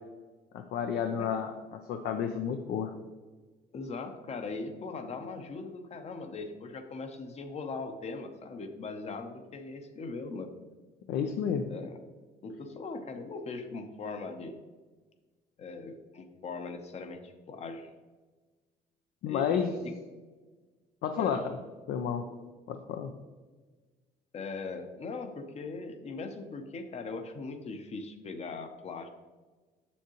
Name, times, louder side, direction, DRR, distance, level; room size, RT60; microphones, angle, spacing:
voice 1, 0.5-2.9 11.1-11.7 19.2-19.7 21.0-21.5 21.9-22.2 22.7-23.1, left 7 dB, 70° left, 6 dB, 0.6 m, -31 dB
voice 2, 3.7-10.5 11.7-12.0 12.4-14.6 15.6-17.9 19.3-19.9 21.1-21.4 24.3-29.1, left 3 dB, 40° left, 7 dB, 0.8 m, -40 dB
7.2 x 6.8 x 3.0 m, 1.3 s
cardioid pair, 110°, 17 cm